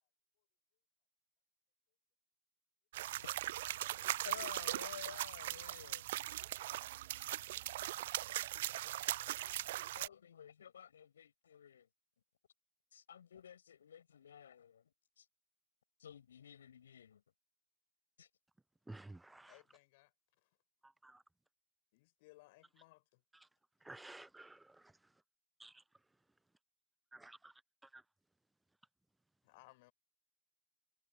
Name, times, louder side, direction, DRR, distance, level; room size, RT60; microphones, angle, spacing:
sound 1, 2.9-10.1, right 15 dB, 55° right, 0.4 m, -40 dB
voice 1, 4.2-6.1 7.7-7.9 8.3-9.3 10.0-11.9 12.9-15.3 16.0-17.2 18.2-18.3, left 8 dB, 65° left, 6.9 m, -54 dB
voice 2, 18.9-19.5 21.0-21.1 23.9-24.6 25.6-25.7 27.2-27.5, right 2 dB, 5° right, 0.7 m, -52 dB
voice 3, 19.5-20.1 20.4-20.5 21.9-23.2 29.4-29.9, left 23 dB, 50° left, 7.5 m, -63 dB
figure-of-eight pair, 90°, 0 cm